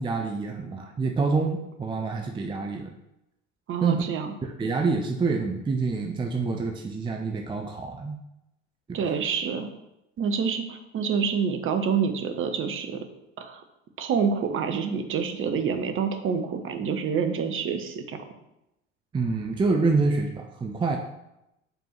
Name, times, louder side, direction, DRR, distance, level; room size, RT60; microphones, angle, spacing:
voice 1, 0.0-2.9 3.8-4.0 4.4-8.2 8.9-9.0 19.1-21.0, right 4 dB, 15° right, 4 dB, 0.6 m, -27 dB
voice 2, 3.7-4.3 8.9-9.7 10.2-13.0 13.4-13.6 14.0-18.2, right 6 dB, 35° right, 7 dB, 1.0 m, -27 dB
5.4 x 4.5 x 5.9 m, 0.88 s
figure-of-eight pair, 65°, 36 cm